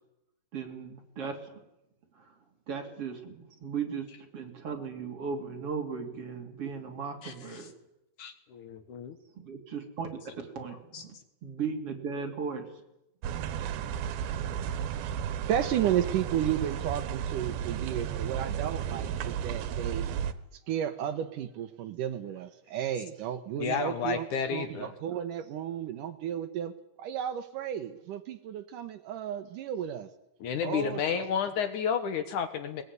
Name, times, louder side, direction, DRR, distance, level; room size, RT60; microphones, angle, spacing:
voice 1, 0.5-1.6 2.2-2.3 2.7-4.1 4.3-7.7 9.4-11.2 11.4-12.7, right 5 dB, 40° right, 3 dB, 3.6 m, -37 dB
voice 2, 8.2-9.2 10.9-11.0 23.6-24.9 30.4-32.8, left 7 dB, 65° left, 10 dB, 2.5 m, -31 dB
sound 1, 13.2-20.3, right 9 dB, 90° right, 3.0 m, -33 dB
voice 3, 15.5-20.1 20.7-26.7 27.0-30.1 30.6-31.3, right 10 dB, 70° right, 10 dB, 2.4 m, -33 dB
21.0 x 21.0 x 9.6 m, 0.91 s
omnidirectional pair, 4.2 m